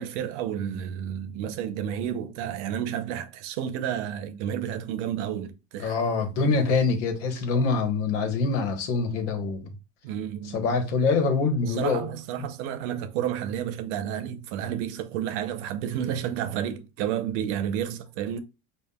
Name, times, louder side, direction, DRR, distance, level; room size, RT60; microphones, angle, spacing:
voice 1, 0.0-6.0 10.0-10.7 11.6-18.4, right 9 dB, 80° right, 0.7 m, -31 dB
voice 2, 5.8-9.7 10.5-12.1, left 4 dB, 85° left, 1.2 m, -25 dB
5.2 x 2.5 x 2.3 m
cardioid pair, 150°, 34 cm